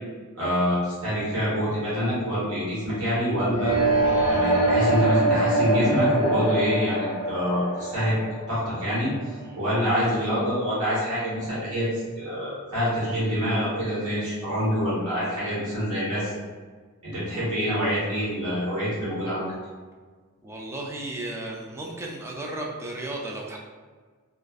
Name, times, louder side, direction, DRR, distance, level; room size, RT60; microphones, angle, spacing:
voice 1, 0.4-3.8 4.3-8.1 8.5-9.1 9.6-16.3 17.0-19.4, equal, 75° right, -8 dB, 1.1 m, -26 dB
sound 1, 3.5-9.4, right 2 dB, 85° left, 0.6 m, -24 dB
voice 2, 20.4-23.6, right 1 dB, 10° right, -1 dB, 0.3 m, -34 dB
2.4 x 2.3 x 2.3 m, 1.5 s
head